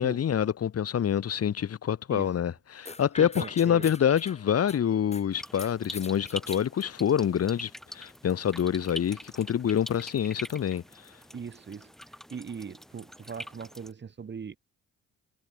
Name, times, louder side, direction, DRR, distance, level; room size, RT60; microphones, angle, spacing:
voice 1, 0.0-10.8, left 9 dB, 50° left, 1.8 m, -26 dB
sound 1, 2.8-5.2 5.6-6.6, left 3 dB, 20° left, 5.8 m, -43 dB
voice 2, 3.2-3.9 11.3-11.9 12.3-14.6, right 6 dB, 35° right, 1.9 m, -40 dB
sound 2, 5.3-13.9, equal, ahead, 6.6 m, -44 dB
cardioid pair, 90°, 30 cm